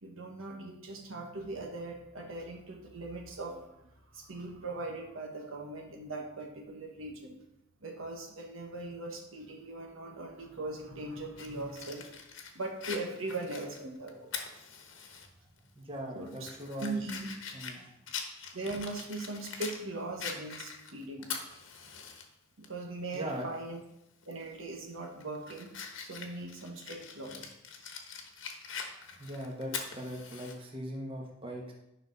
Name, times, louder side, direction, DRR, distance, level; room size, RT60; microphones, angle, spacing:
voice 1, 0.0-7.4 7.8-12.1 12.5-14.3 16.1-16.5 16.8-17.3 18.5-21.3 22.6-23.8 24.3-25.7 26.0-27.5, right 2 dB, 80° right, 2 dB, 1.3 m, -40 dB
Fire, 11.4-15.3 15.6-15.7 16.3-19.8 20.2-22.2 22.6-22.7 24.2-24.5 24.9-30.5, left 6 dB, 65° left, 1.2 m, -43 dB
voice 2, 15.7-16.9 17.5-17.9 23.1-23.5 29.2-31.7, equal, 25° right, 0 dB, 1.3 m, -40 dB
10.0 x 5.7 x 4.0 m, 0.86 s
head